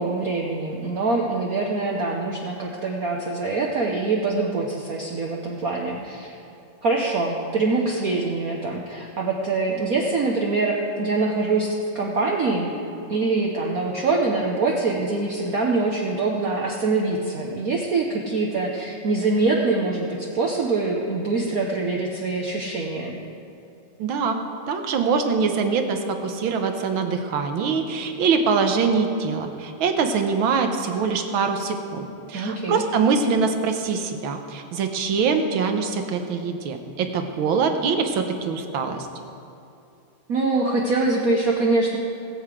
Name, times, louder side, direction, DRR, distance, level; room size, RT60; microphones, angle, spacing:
voice 1, 0.0-6.4 6.8-12.7 13.1-23.2 32.3-32.8 40.3-42.0, right 3 dB, 50° right, -1 dB, 1.2 m, -24 dB
voice 2, 24.0-24.4 24.7-39.0, right 5 dB, 70° right, 6 dB, 1.7 m, -23 dB
20.0 x 7.9 x 4.9 m, 2.7 s
omnidirectional pair, 2.4 m